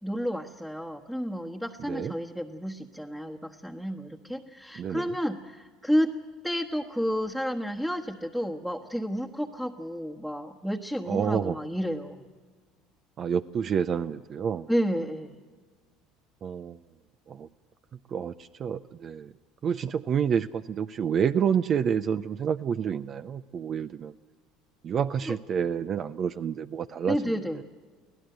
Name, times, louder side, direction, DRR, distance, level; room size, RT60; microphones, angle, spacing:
voice 1, 0.0-6.1 6.4-12.3 14.7-15.4 25.3-25.4 27.1-27.6, equal, 5° right, 1 dB, 1.3 m, -31 dB
voice 2, 4.8-5.1 11.1-11.6 13.2-14.7 16.4-16.8 17.3-17.5 18.1-19.3 19.6-24.2 24.8-27.2, right 7 dB, 45° right, 11 dB, 0.5 m, -28 dB
24.5 x 16.5 x 7.9 m, 1.5 s
hypercardioid pair, 80°, 0 cm